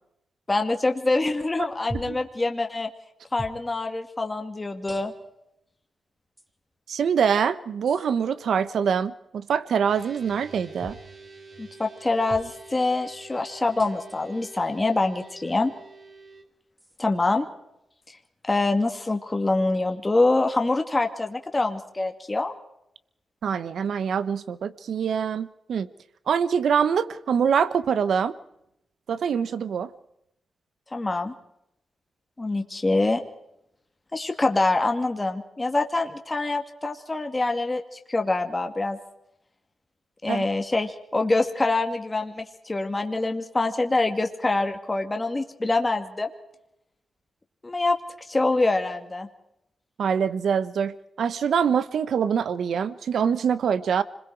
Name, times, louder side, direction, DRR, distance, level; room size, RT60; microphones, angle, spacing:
voice 1, 0.5-2.9 3.3-5.1 11.6-15.7 17.0-17.4 18.1-18.2 18.5-22.5 30.9-31.3 32.4-33.2 34.1-39.0 40.2-46.3 47.6-48.0 48.3-49.3, left 2 dB, 25° left, 4 dB, 2.2 m, -25 dB
sound 1, 1.9-2.3 3.4-3.6 4.9-5.4 6.4-6.5 7.9-8.1 10.8-11.1 12.3-12.5 13.8-14.2 15.3-15.4 16.8-17.0, right 1 dB, 10° right, 2.7 m, -40 dB
voice 2, 6.9-11.0 23.4-25.9 26.3-28.4 29.1-29.9 40.3-40.4 50.0-54.0, right 7 dB, 75° right, 14 dB, 1.1 m, -24 dB
sound 2, 9.9-16.4, right 3 dB, 55° right, 3.6 m, -47 dB
26.0 x 21.5 x 4.8 m, 0.80 s
cardioid pair, 70°, 0 cm